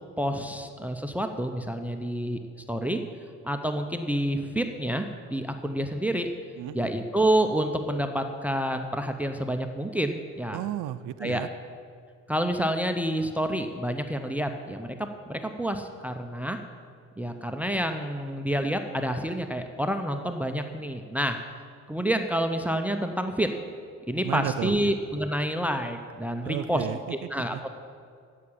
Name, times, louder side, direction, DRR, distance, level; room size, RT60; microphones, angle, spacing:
voice 1, 0.2-2.4 2.7-3.0 3.4-6.3 6.7-10.6 11.2-11.4 12.3-16.6 17.2-21.4 21.9-23.5 24.1-26.9 27.3-27.7, right 1 dB, 5° right, 6 dB, 0.7 m, -28 dB
voice 2, 6.6-6.9 10.5-11.5 24.2-24.9 26.4-27.6, right 12 dB, 90° right, 15 dB, 0.5 m, -33 dB
9.3 x 7.5 x 8.6 m, 2.3 s
cardioid pair, 90°, 30 cm